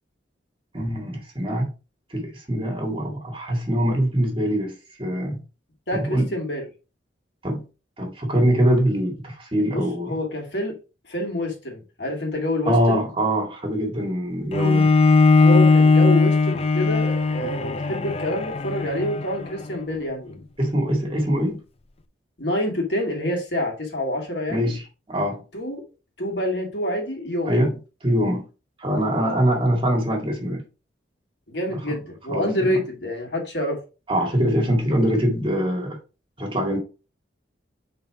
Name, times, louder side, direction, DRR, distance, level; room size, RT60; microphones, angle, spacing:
voice 1, 0.7-1.7 2.1-5.4 5.9-6.3 7.4-7.6 8.0-10.1 12.7-14.9 20.6-21.6 24.5-25.4 27.4-27.8 28.0-28.5 28.8-30.6 31.7-32.0 32.3-32.8 34.1-36.0 36.4-36.8, equal, 30° right, 1.9 m, -23 dB
voice 2, 5.9-6.7 9.7-10.8 11.1-13.0 15.4-20.5 22.4-24.7 25.5-25.8 26.2-27.6 29.2-29.4 31.5-33.8, left 1 dB, 65° left, 2.1 m, -27 dB
Bowed string instrument, 14.5-19.7, left 3 dB, 35° left, 0.5 m, -18 dB
5.5 x 4.0 x 4.7 m
head